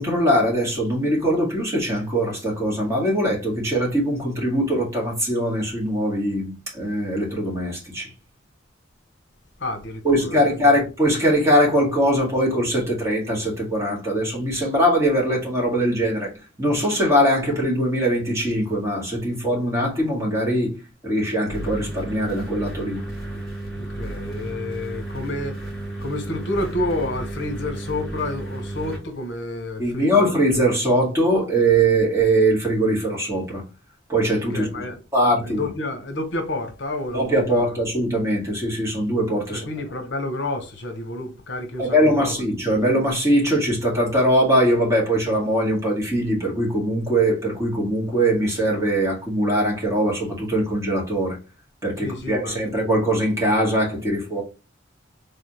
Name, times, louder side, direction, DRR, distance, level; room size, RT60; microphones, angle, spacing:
voice 1, 0.0-8.1 10.0-20.7 21.0-23.0 23.3-23.4 29.8-33.6 34.1-34.7 35.1-35.6 37.1-39.6 41.8-51.4 51.8-54.4, right 1 dB, 15° right, 1.9 m, -21 dB
voice 2, 9.6-10.8 23.8-30.3 34.5-35.0 35.4-37.8 39.5-42.5 52.0-52.7, left 2 dB, 65° left, 0.9 m, -30 dB
sound 1, 21.5-29.0, right 1 dB, ahead, 2.3 m, -33 dB
4.0 x 3.5 x 2.9 m
head